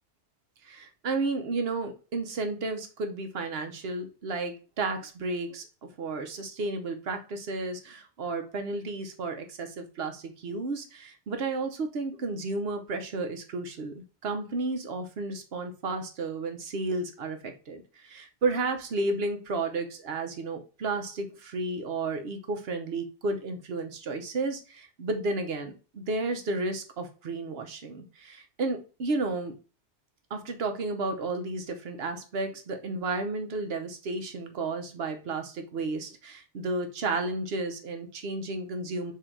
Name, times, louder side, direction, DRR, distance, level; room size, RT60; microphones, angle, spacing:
voice 1, 0.6-5.7 6.0-29.6 30.3-39.1, right 3 dB, 60° right, 6 dB, 1.0 m, -32 dB
3.8 x 2.8 x 4.4 m, 0.33 s
omnidirectional pair, 1.2 m